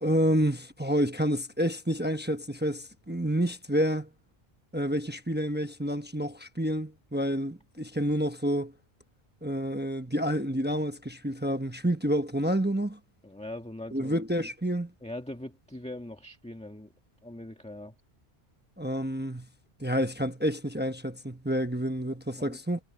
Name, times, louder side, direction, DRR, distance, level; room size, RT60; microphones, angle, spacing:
voice 1, 0.0-4.1 4.7-8.7 9.4-13.0 13.9-14.9 18.8-19.5 19.8-22.8, equal, 10° right, 0.9 m, -29 dB
voice 2, 13.2-14.1 15.0-16.9 17.2-17.9 22.4-22.6, left 1 dB, 5° left, 1.7 m, -41 dB
omnidirectional pair, 1.1 m